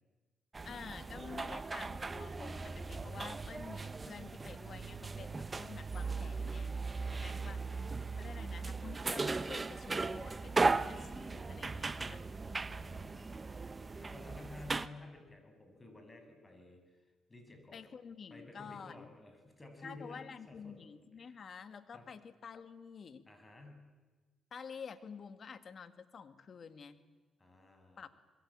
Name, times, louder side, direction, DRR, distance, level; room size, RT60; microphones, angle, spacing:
sound 1, 0.5-14.9, right 3 dB, 30° right, 1.2 m, -37 dB
voice 1, 0.6-13.1 17.7-19.1 19.8-23.2 24.5-27.0 28.0-28.1, left 6 dB, 55° left, 10 dB, 2.0 m, -50 dB
voice 2, 7.1-7.8 12.6-13.5 14.0-17.0 17.3-17.8 18.3-20.8 21.2-21.3 21.9-22.1 23.3-23.9 27.4-28.0, left 2 dB, 25° left, 5 dB, 7.7 m, -54 dB
26.5 x 22.0 x 8.9 m, 1.3 s
supercardioid pair, 65°, 0 cm